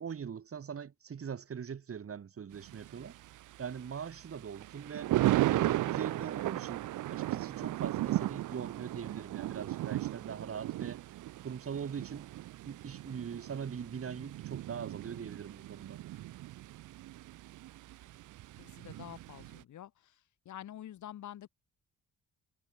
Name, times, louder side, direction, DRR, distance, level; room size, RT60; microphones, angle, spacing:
voice 1, 0.0-3.2 3.6-5.1 5.5-11.0 11.4-12.3 12.6-16.0, right 7 dB, 50° right, 6.0 m, -41 dB
Thunder, 2.5-19.6, right 15 dB, 90° right, 2.5 m, -36 dB
voice 2, 18.6-20.2 20.4-21.5, left 11 dB, 75° left, 6.5 m, -47 dB
cardioid pair, 90°, 30 cm